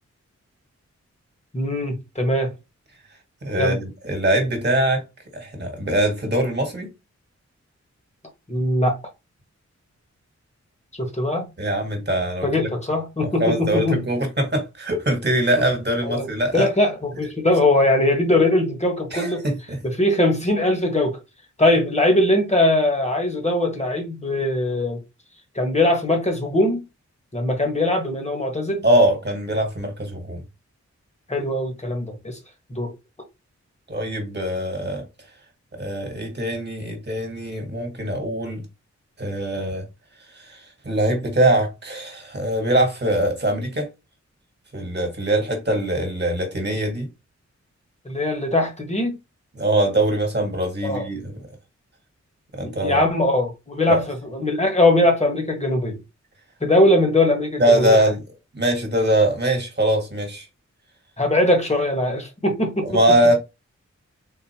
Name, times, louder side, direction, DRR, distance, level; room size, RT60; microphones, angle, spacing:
voice 1, 1.5-2.5 3.6-3.8 8.5-9.0 11.0-11.5 12.4-14.0 15.6-15.7 16.0-16.3 16.5-19.5 19.8-21.2 21.6-25.0 25.5-26.8 27.3-28.8 31.3-32.4 32.7-32.9 48.0-49.2 50.8-51.0 52.6-56.0 56.6-58.0 61.2-63.0, left 1 dB, 25° left, 1.3 m, -21 dB
voice 2, 3.4-5.0 5.3-6.9 11.6-12.5 13.2-16.7 19.1-19.8 28.8-30.4 33.9-35.0 35.8-38.6 39.2-39.8 40.4-40.6 40.8-43.9 44.7-47.1 49.6-51.4 52.5-53.0 53.9-54.0 57.6-58.2 58.5-60.4 62.8-63.3, right 1 dB, 35° right, 1.5 m, -22 dB
3.9 x 2.5 x 2.9 m
cardioid pair, 55°, 29 cm